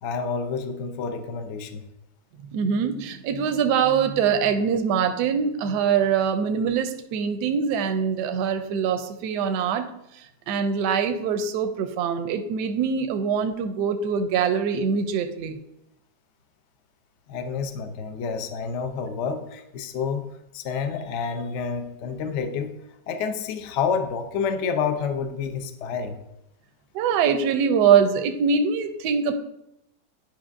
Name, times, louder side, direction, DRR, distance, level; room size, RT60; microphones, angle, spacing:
voice 1, 0.0-1.9 17.3-22.8 23.1-26.2, left 6 dB, 70° left, 7 dB, 0.6 m, -29 dB
voice 2, 2.5-9.9 10.1-15.6 26.9-29.3, right 6 dB, 75° right, 7 dB, 1.1 m, -23 dB
10.5 x 5.2 x 2.5 m, 0.82 s
omnidirectional pair, 1.9 m